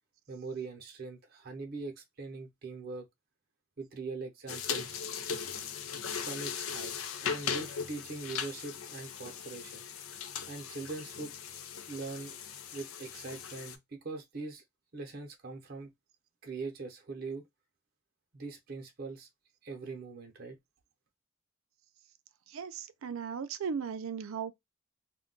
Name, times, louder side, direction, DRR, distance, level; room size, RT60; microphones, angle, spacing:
voice 1, 0.3-3.1 3.8-5.0 6.2-9.9 10.5-11.3 11.9-12.4 12.7-14.6 14.9-15.9 16.4-17.5 18.3-19.3 19.6-20.6, right 3 dB, 45° right, 0.7 m, -42 dB
sound 1, 4.5-13.8, left 7 dB, 85° left, 0.5 m, -39 dB
voice 2, 22.5-24.5, right 6 dB, 85° right, 0.4 m, -37 dB
2.2 x 2.2 x 3.7 m
head